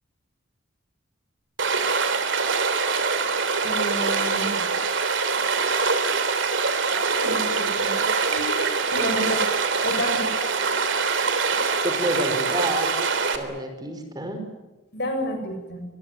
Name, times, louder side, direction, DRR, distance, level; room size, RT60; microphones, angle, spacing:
Stream, 1.6-13.4, right 4 dB, 60° right, 3.3 m, -24 dB
voice 1, 3.6-4.7 7.2-8.1 8.3-9.5 9.8-10.3 14.9-15.8, equal, 55° left, 6 dB, 7.6 m, -30 dB
voice 2, 11.8-12.9 13.3-14.4, right 1 dB, 20° right, 6 dB, 5.0 m, -29 dB
26.0 x 22.0 x 9.3 m, 1.1 s
head